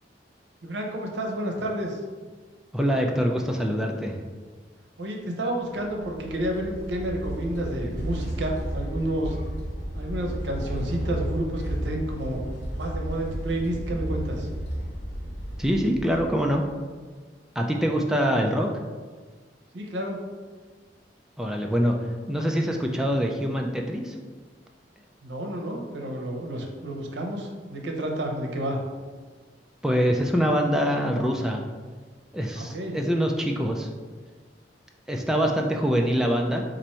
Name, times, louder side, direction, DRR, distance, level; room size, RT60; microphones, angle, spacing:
voice 1, 0.6-2.0 5.0-9.4 9.9-12.4 12.8-14.5 18.4-18.6 19.7-20.2 25.2-28.8 32.5-33.0, right 1 dB, 80° right, 1 dB, 0.7 m, -30 dB
voice 2, 2.7-4.1 15.6-16.6 17.6-18.7 21.4-24.2 29.8-31.6 32.3-33.9 35.1-36.6, equal, 5° right, 1 dB, 0.3 m, -24 dB
sound 1, 5.8-16.8, equal, 85° left, 1.2 m, -33 dB
4.4 x 2.6 x 4.2 m, 1.4 s
head